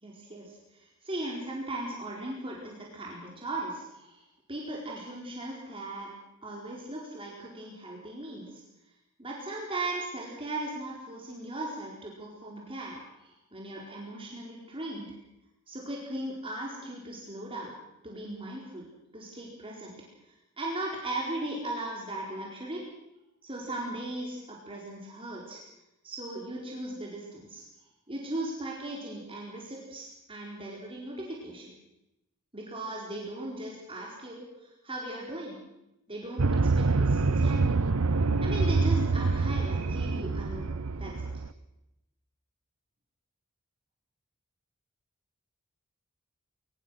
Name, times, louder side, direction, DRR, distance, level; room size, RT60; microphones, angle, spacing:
voice 1, 0.0-6.1 6.4-8.6 9.2-15.1 15.7-17.7 18.0-18.9 19.1-19.9 20.6-22.8 23.4-25.6 26.0-27.6 28.1-31.7 32.5-35.6 36.1-36.4 36.8-37.8 38.4-41.3, right 1 dB, 25° right, -3 dB, 4.5 m, -38 dB
sound 1, 36.4-41.5, right 3 dB, 90° right, 0.9 m, -26 dB
23.0 x 21.5 x 6.5 m, 0.89 s
head